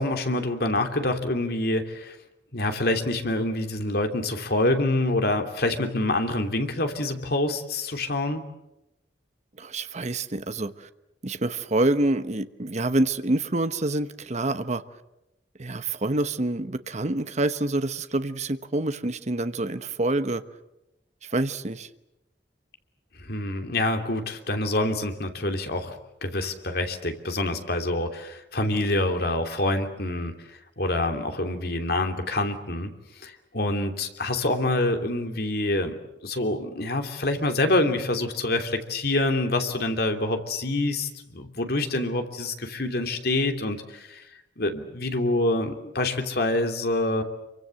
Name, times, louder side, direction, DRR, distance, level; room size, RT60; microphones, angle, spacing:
voice 1, 0.0-2.2 2.5-8.4 23.2-26.0 26.2-30.3 30.8-32.9 33.2-36.0 36.2-44.2 44.6-47.2, left 2 dB, 60° left, 5 dB, 3.0 m, -26 dB
voice 2, 9.6-10.9 11.2-14.8 15.6-20.4 21.3-21.9, right 2 dB, 40° right, 11 dB, 1.1 m, -27 dB
27.0 x 24.0 x 7.7 m, 0.90 s
head